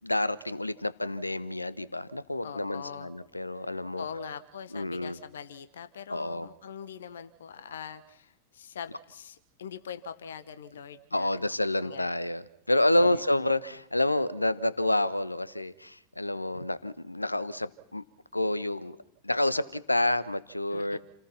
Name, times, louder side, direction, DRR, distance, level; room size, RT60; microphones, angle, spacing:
voice 1, 0.0-4.1 4.7-5.2 6.1-6.5 11.1-18.0 18.3-19.0 19.2-21.0, left 1 dB, 85° left, 1.2 m, -29 dB
voice 2, 2.4-3.1 3.6-11.5 11.8-12.3 13.0-13.5 20.7-21.0, left 7 dB, 65° left, 1.4 m, -43 dB
29.5 x 18.5 x 6.0 m
figure-of-eight pair, 90°, 0 cm